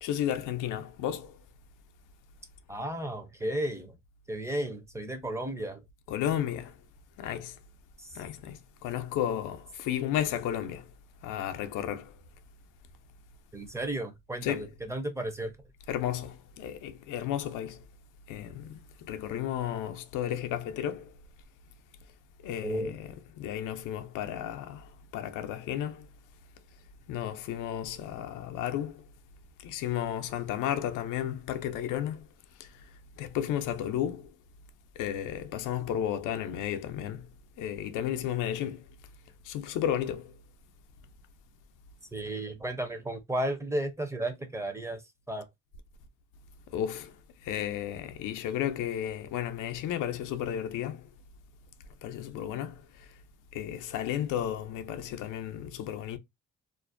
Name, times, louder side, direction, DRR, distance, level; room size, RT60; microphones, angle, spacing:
voice 1, 0.0-1.4 6.1-6.8 7.2-7.6 8.1-10.9 11.2-12.2 14.4-14.7 15.9-17.8 18.3-21.1 22.4-26.1 27.1-29.0 29.6-32.3 32.6-32.9 33.1-34.3 35.0-37.3 37.6-38.8 39.4-40.4 46.7-47.2 47.4-51.1 52.0-53.1 53.5-56.2, left 10 dB, 85° left, 0.4 m, -33 dB
voice 2, 2.7-3.9 4.3-5.8 8.0-8.1 13.5-15.5 22.6-22.9 42.1-45.0 45.3-45.5, right 1 dB, 10° right, 0.5 m, -33 dB
2.5 x 2.0 x 2.4 m
cardioid pair, 90°, 30 cm